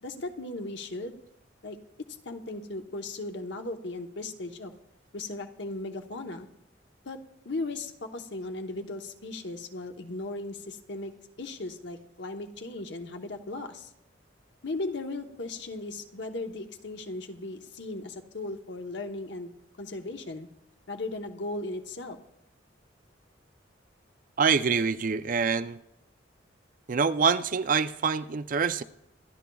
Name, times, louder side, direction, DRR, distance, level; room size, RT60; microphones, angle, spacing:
voice 1, 0.0-1.2 1.6-1.8 2.2-4.7 5.1-6.5 7.0-7.2 7.4-11.1 11.4-13.9 14.6-19.5 19.8-20.5 20.9-22.2, left 2 dB, 65° left, 1.0 m, -37 dB
voice 2, 24.4-25.8 26.9-28.8, right 5 dB, 45° right, 0.5 m, -25 dB
26.0 x 11.5 x 2.3 m
head